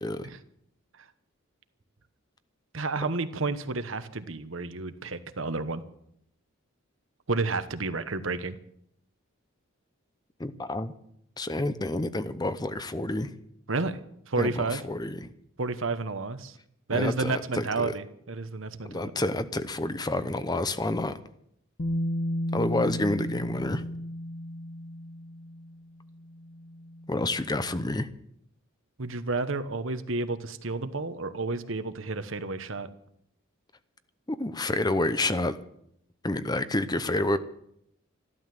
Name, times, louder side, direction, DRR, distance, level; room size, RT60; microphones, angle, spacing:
voice 1, 2.7-5.8 7.3-8.6 13.7-14.0 14.3-14.8 15.6-16.6 16.9-19.0 29.0-32.9, right 3 dB, 65° right, 11 dB, 1.1 m, -31 dB
voice 2, 10.4-10.9 11.4-13.3 14.4-15.3 16.9-18.0 18.8-21.2 22.5-23.8 27.1-28.1 34.3-35.6 36.2-37.4, left 2 dB, 20° left, 12 dB, 0.7 m, -29 dB
Bass guitar, 21.8-27.8, equal, 50° left, 0.9 m, -34 dB
13.5 x 12.5 x 7.7 m, 0.73 s
head